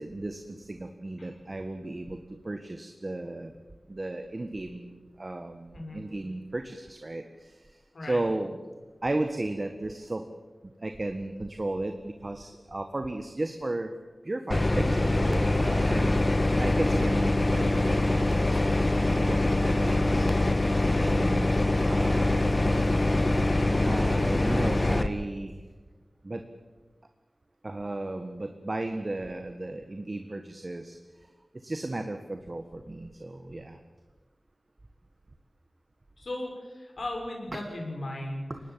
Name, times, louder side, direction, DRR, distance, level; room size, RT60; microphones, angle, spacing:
voice 1, 0.0-2.2 2.4-3.5 3.9-7.5 8.0-8.6 9.0-10.2 10.8-13.9 14.2-16.2 16.6-18.6 19.1-20.3 20.9-21.5 21.9-22.6 23.8-25.5 26.2-26.4 27.6-31.0 31.6-33.8 38.5-38.6, right 2 dB, 40° right, 6 dB, 1.5 m, -34 dB
sound 1, 14.5-25.1, left 2 dB, 35° left, 1.3 m, -24 dB
voice 2, 36.2-38.5, left 1 dB, 80° left, 1 dB, 6.5 m, -36 dB
23.5 x 19.5 x 7.6 m, 1.3 s
wide cardioid pair, 70°, 0 cm